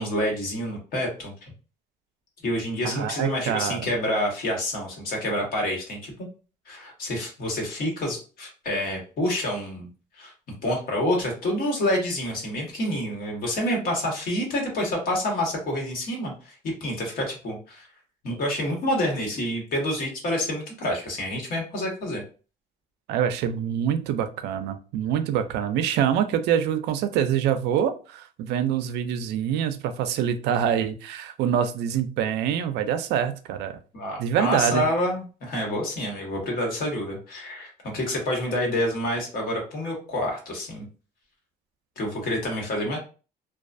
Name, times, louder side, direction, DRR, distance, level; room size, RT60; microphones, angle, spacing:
voice 1, 0.0-1.5 2.4-6.3 6.7-9.9 10.2-10.3 10.6-17.9 18.2-22.2 33.9-40.8 42.0-43.0, left 1 dB, 60° left, 0 dB, 1.2 m, -28 dB
voice 2, 2.8-3.9 23.1-33.8 34.2-34.8, right 9 dB, 85° right, 9 dB, 0.4 m, -25 dB
2.3 x 2.3 x 2.5 m, 0.35 s
cardioid pair, 110°, 17 cm